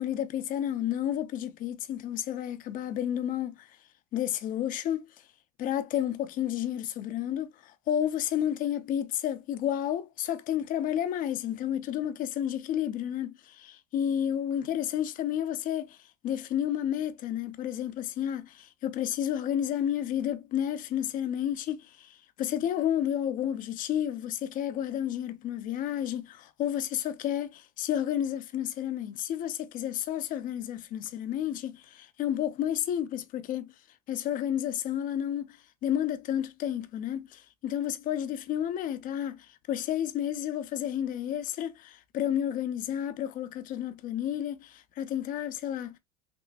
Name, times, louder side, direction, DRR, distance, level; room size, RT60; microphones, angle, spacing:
voice 1, 0.0-3.7 4.1-5.1 5.6-16.0 16.2-33.7 34.1-35.6 35.8-46.0, left 10 dB, 45° left, 0.7 m, -31 dB
6.0 x 2.0 x 2.4 m
supercardioid pair, 115°, 19 cm